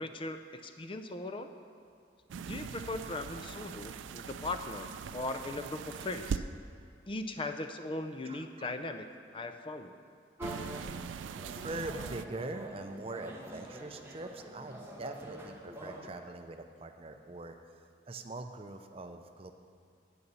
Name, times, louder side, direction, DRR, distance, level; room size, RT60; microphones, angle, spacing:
voice 1, 0.0-1.5 2.4-6.4 7.1-9.1 9.3-9.9, left 2 dB, 30° left, 8 dB, 0.5 m, -39 dB
sound 1, 2.3-6.4 10.4-12.3, right 6 dB, 90° right, 0.4 m, -41 dB
voice 2, 8.2-8.7 10.9-19.5, right 2 dB, 30° right, 6 dB, 0.6 m, -43 dB
sound 2, 10.4-16.1, right 1 dB, 15° right, 1.0 m, -46 dB
9.3 x 6.8 x 6.9 m, 2.4 s
head